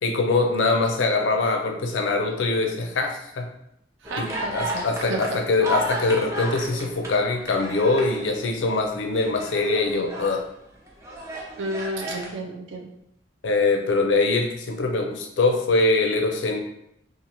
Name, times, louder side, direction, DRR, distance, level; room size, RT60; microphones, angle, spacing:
voice 1, 0.0-3.5 4.2-10.4 13.4-16.6, left 3 dB, 80° left, 4 dB, 0.4 m, -23 dB
sound 1, 4.0-8.6 9.0-10.4 10.9-12.3, right 1 dB, 15° right, 0.4 m, -33 dB
voice 2, 4.0-5.2 6.0-6.1 11.6-12.9, right 1 dB, 85° right, 2 dB, 0.5 m, -32 dB
2.6 x 2.4 x 2.9 m, 0.78 s
head